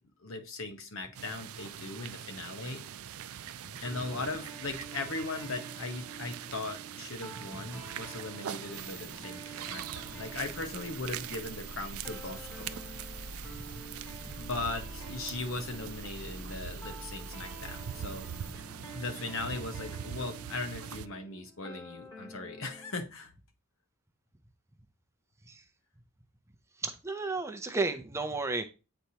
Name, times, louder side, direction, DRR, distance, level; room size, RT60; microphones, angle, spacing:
voice 1, 0.2-2.8 3.8-12.8 14.3-18.5 18.9-23.3, left 3 dB, 70° left, 6 dB, 1.1 m, -39 dB
sound 1, 1.1-21.1, right 9 dB, 85° right, 0.4 m, -43 dB
sound 2, 3.8-23.0, right 2 dB, 20° left, 2.0 m, -49 dB
sound 3, 8.7-18.5, right 1 dB, 40° left, 1.7 m, -47 dB
voice 2, 26.8-28.7, right 3 dB, 15° right, 6 dB, 0.5 m, -32 dB
8.0 x 4.4 x 2.8 m, 0.31 s
head